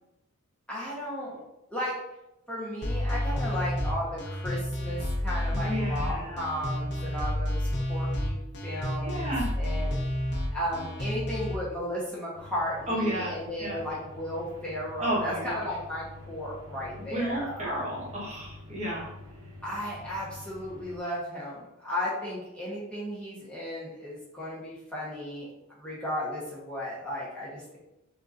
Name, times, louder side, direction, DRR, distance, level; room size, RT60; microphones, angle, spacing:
voice 1, 0.7-1.4 1.7-1.9 2.5-8.4 8.6-9.9 10.5-17.9 19.6-25.5 25.8-27.8, equal, 5° left, -7 dB, 1.0 m, -35 dB
sound 1, 2.8-11.5, left 1 dB, 55° left, 0.8 m, -30 dB
voice 2, 5.5-6.4 9.0-9.5 12.9-13.8 15.0-15.7 17.0-19.1, equal, 30° right, -5 dB, 1.2 m, -32 dB
sound 2, 12.3-21.0, left 1 dB, 75° right, 0.9 m, -47 dB
6.1 x 2.7 x 2.5 m, 0.89 s
head